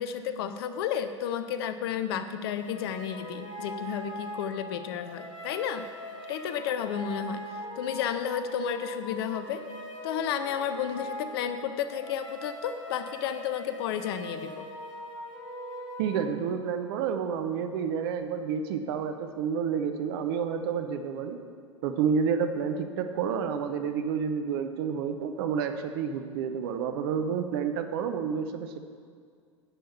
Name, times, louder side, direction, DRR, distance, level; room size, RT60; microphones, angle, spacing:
voice 1, 0.0-5.9 6.3-7.4 7.7-9.6 10.0-14.6, left 9 dB, 50° left, 10 dB, 0.6 m, -32 dB
sound 1, 2.5-16.2, equal, 85° left, 2.1 m, -41 dB
voice 2, 16.0-21.4 21.8-28.8, right 7 dB, 50° right, 7 dB, 0.8 m, -29 dB
9.9 x 5.7 x 6.9 m, 2.1 s
figure-of-eight pair, 85°, 16 cm